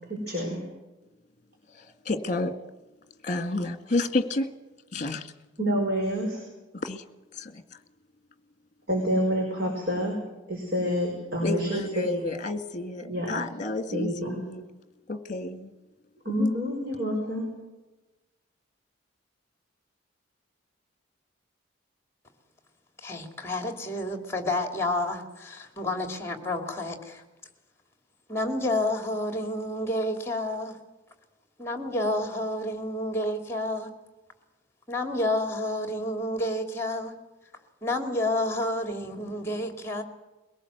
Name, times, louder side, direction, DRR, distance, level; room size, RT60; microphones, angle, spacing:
voice 1, 0.1-0.6 5.6-6.4 8.9-10.1 10.5-12.2 13.1-13.3 13.9-14.4 16.3-17.5, equal, 50° right, 5.3 m, -28 dB
voice 2, 1.7-2.6 3.2-4.5 4.9-5.3 6.7-7.0 7.3-7.6 11.4-14.6 15.1-15.7 16.4-16.6, left 2 dB, 35° left, 1.8 m, -30 dB
voice 3, 23.0-27.2 28.3-30.8 31.6-33.9 34.9-37.1 37.8-40.0, left 1 dB, 10° left, 2.6 m, -29 dB
22.5 x 18.0 x 8.1 m
head